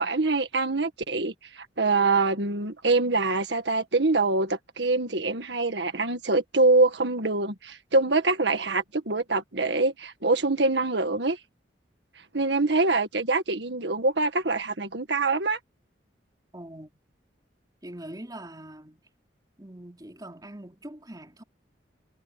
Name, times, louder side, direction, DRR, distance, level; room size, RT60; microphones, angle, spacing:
voice 1, 0.0-11.4 12.3-15.6, right 3 dB, 70° right, 1.8 m, -24 dB
voice 2, 16.5-16.9 17.8-19.0 19.6-21.4, right 1 dB, 20° right, 3.7 m, -42 dB
head